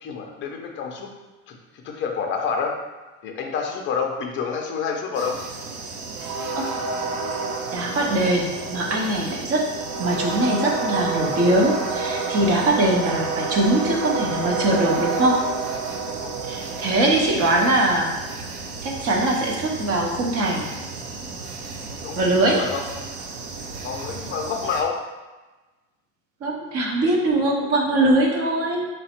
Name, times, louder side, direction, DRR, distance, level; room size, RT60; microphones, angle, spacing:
voice 1, 0.0-1.1 1.5-2.7 3.2-5.4 16.2-16.4 22.0-22.2 22.5-22.8 23.8-25.0, left 5 dB, 30° left, 2 dB, 0.5 m, -28 dB
sound 1, 5.2-24.8, right 4 dB, 75° right, 0.7 m, -30 dB
voice 2, 7.7-9.7 10.0-15.4 16.4-18.1 18.8-20.7 22.2-22.6 26.4-28.9, right 1 dB, 35° right, -1 dB, 0.7 m, -21 dB
4.0 x 2.1 x 4.2 m, 1.2 s
supercardioid pair, 140°, 40 cm